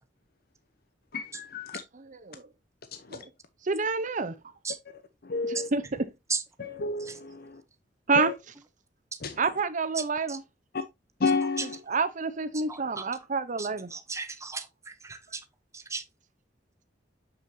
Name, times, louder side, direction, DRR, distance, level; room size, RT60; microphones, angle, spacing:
voice 1, 1.1-1.8 2.9-3.3 5.2-5.7 6.6-7.6 8.1-8.3 9.2-9.4 10.7-10.8 11.2-11.8, left 4 dB, 55° left, 0.8 m, -31 dB
voice 2, 1.9-2.5 3.1-3.3 3.6-4.3 5.5-6.1 8.1-8.3 9.4-10.4 11.9-13.9, right 4 dB, 45° right, 0.8 m, -28 dB
voice 3, 10.0-10.4 11.6-11.7 12.7-13.0 13.6-15.4 15.7-16.0, right 4 dB, 15° right, 0.9 m, -35 dB
7.2 x 6.4 x 2.7 m
head